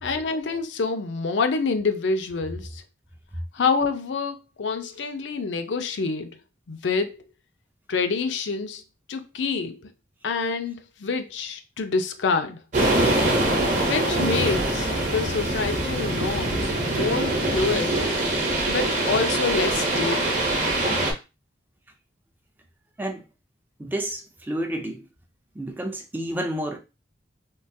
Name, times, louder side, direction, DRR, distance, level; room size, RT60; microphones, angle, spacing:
voice 1, 0.0-2.8 3.5-6.4 6.7-7.2 7.9-8.8 9.1-9.8 10.2-12.6 13.8-18.0 18.7-20.4, left 4 dB, 80° left, 0.5 m, -27 dB
sound 1, 12.7-21.1, right 1 dB, 45° right, 0.8 m, -24 dB
voice 2, 23.8-25.0 25.6-26.8, right 1 dB, 10° right, 0.3 m, -30 dB
3.7 x 2.3 x 2.6 m
head